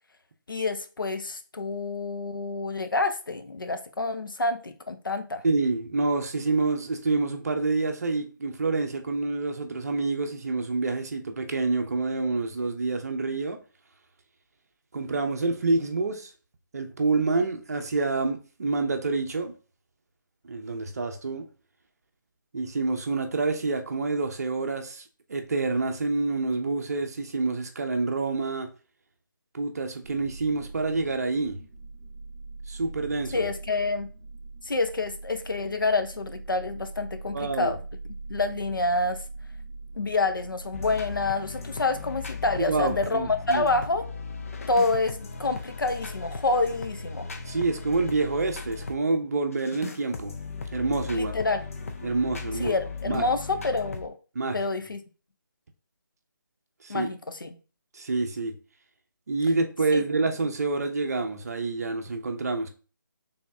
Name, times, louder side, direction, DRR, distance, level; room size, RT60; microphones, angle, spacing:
voice 1, 0.5-5.4 33.3-34.1 34.6-37.8 38.3-39.2 39.9-44.0 44.7-47.3 51.1-51.6 52.6-54.1 54.5-55.0 56.9-57.5 59.9-60.0, left 3 dB, 75° left, 0.7 m, -28 dB
voice 2, 5.4-13.6 14.9-16.3 16.7-19.5 20.4-21.5 22.5-25.0 25.3-28.7 29.5-31.6 32.7-33.4 37.3-37.7 42.6-43.7 47.5-50.3 50.7-51.3 52.0-52.7 53.0-53.2 54.3-54.6 56.8-57.1 57.9-58.5 59.3-62.7, right 3 dB, 45° right, 0.7 m, -27 dB
sound 1, 30.0-42.2, right 3 dB, 20° right, 1.1 m, -42 dB
sound 2, 40.7-49.0 49.5-54.1, left 4 dB, 40° left, 0.5 m, -37 dB
4.2 x 3.5 x 2.7 m
figure-of-eight pair, 155°, 11 cm